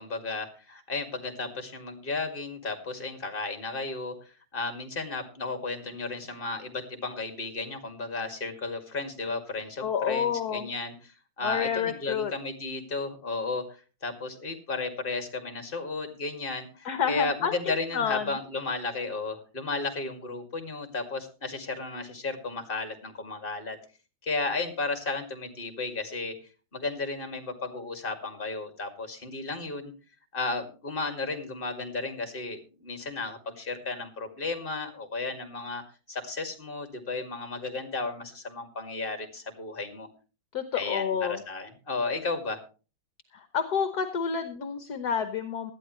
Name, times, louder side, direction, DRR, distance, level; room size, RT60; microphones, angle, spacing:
voice 1, 0.0-23.8 24.2-26.3 26.7-29.9 30.3-35.8 36.1-40.1 40.7-42.6, left 3 dB, 30° left, 6 dB, 2.4 m, -34 dB
voice 2, 9.8-10.7 11.4-12.3 16.8-17.5 17.9-18.2 40.5-41.4 43.3-45.7, left 7 dB, 60° left, 9 dB, 1.5 m, -29 dB
18.0 x 12.5 x 3.1 m, 0.35 s
omnidirectional pair, 2.0 m